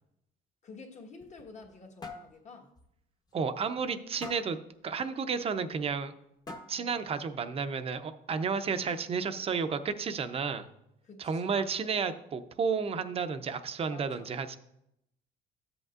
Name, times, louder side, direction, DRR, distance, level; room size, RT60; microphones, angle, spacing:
voice 1, 0.6-2.7 6.8-7.0 8.7-8.9 11.0-11.6 13.9-14.3, left 4 dB, 45° left, 1 dB, 1.4 m, -50 dB
sound 1, 1.0-1.8 2.0-2.3 2.8-2.9 3.3-3.4 4.2-4.6 5.7-5.8 6.5-6.9, left 3 dB, 25° left, 1.0 m, -44 dB
voice 2, 3.3-6.1 6.7-10.7 11.2-14.6, right 5 dB, 35° right, 10 dB, 0.6 m, -32 dB
13.0 x 7.9 x 2.5 m, 0.82 s
cardioid pair, 110°, 17 cm